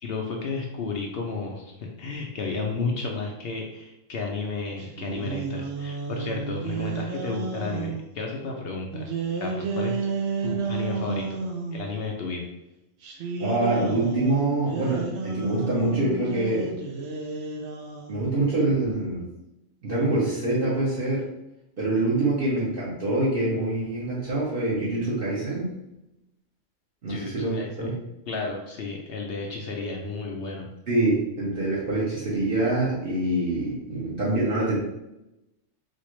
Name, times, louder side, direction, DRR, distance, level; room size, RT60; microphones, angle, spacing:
voice 1, 0.0-9.1 9.4-10.1 10.4-11.4 11.7-12.5 27.1-30.7, left 4 dB, 65° left, 1 dB, 0.7 m, -32 dB
sound 1, 4.8-8.1 8.9-11.9 13.0-18.3, right 4 dB, 75° right, 0.9 m, -31 dB
voice 2, 13.4-16.7 18.1-19.3 19.8-21.3 21.8-25.7 27.0-27.9 29.8-30.1 30.9-34.8, right 2 dB, 55° right, -7 dB, 1.1 m, -25 dB
4.1 x 2.5 x 3.1 m, 0.90 s
omnidirectional pair, 1.2 m